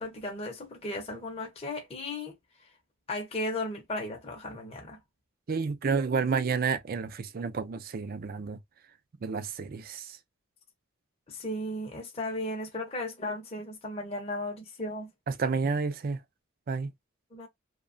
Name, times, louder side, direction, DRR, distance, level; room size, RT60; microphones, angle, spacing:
voice 1, 0.0-2.3 3.1-5.0 11.3-15.1 17.3-17.5, left 1 dB, 30° left, 0.6 m, -35 dB
voice 2, 5.5-8.6 9.2-10.2 15.3-16.2 16.7-16.9, right 5 dB, 45° right, 0.4 m, -30 dB
2.7 x 2.2 x 2.5 m
head